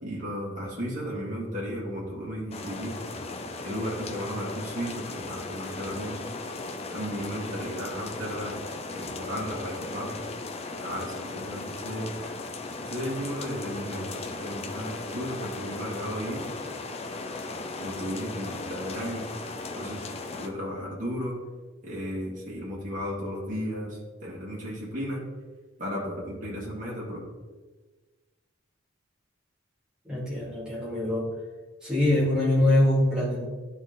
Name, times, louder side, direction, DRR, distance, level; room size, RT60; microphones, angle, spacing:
voice 1, 0.0-2.9 3.6-6.2 6.9-8.6 8.9-10.2 10.8-12.1 12.8-16.4 17.8-19.3 19.7-20.1 20.3-21.4 21.8-25.2 25.8-27.2, equal, 40° right, -6 dB, 1.9 m, -34 dB
sound 1, 2.5-20.5, left 3 dB, 30° left, 0.5 m, -37 dB
voice 2, 30.0-31.3 31.8-33.5, left 1 dB, 5° right, -8 dB, 2.2 m, -24 dB
11.5 x 4.2 x 3.9 m, 1.3 s
head